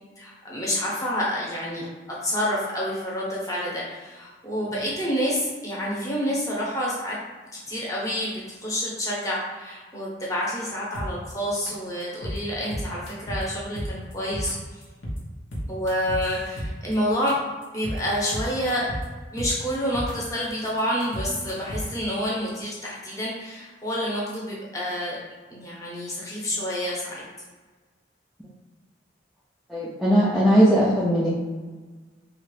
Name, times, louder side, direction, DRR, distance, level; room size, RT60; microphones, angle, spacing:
voice 1, 0.2-1.9 2.2-7.2 7.5-8.3 8.6-14.5 15.7-17.3 17.7-18.9 19.3-25.2 25.5-27.2, equal, 20° left, -6 dB, 0.8 m, -28 dB
sound 1, 10.9-11.3 11.7-11.8 12.0-12.4 12.7-13.4 13.8-14.5 14.8-15.2 15.5-16.9 17.3-17.4 17.6-18.0 18.3-19.0 19.4-20.1 20.4-22.0, equal, 85° left, 0.8 m, -32 dB
voice 2, 29.7-31.3, equal, ahead, -9 dB, 0.4 m, -19 dB
3.0 x 2.4 x 3.1 m, 1.3 s
head